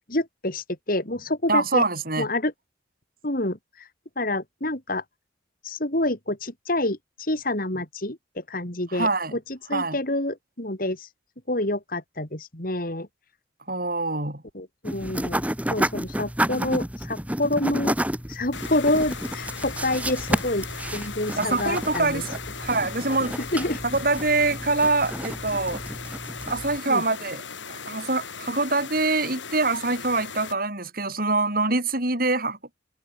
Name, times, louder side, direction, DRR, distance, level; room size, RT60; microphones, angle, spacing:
voice 1, 0.1-1.8 2.2-2.5 3.2-3.6 4.2-5.0 5.6-7.0 7.3-9.4 9.7-11.1 11.5-13.1 14.5-15.4 15.7-17.9 18.3-20.7 20.9-22.2 23.5-23.8 26.9-27.0, left 1 dB, 50° left, 4.4 m, -27 dB
voice 2, 1.5-2.3 8.9-9.4 9.7-10.0 13.7-14.4 21.4-23.4 23.8-25.8 26.5-27.4 27.7-32.6, right 3 dB, 50° right, 7.8 m, -25 dB
sound 1, 14.9-26.8, right 1 dB, 10° right, 2.2 m, -31 dB
sound 2, 18.5-30.5, left 6 dB, 90° left, 6.6 m, -38 dB
head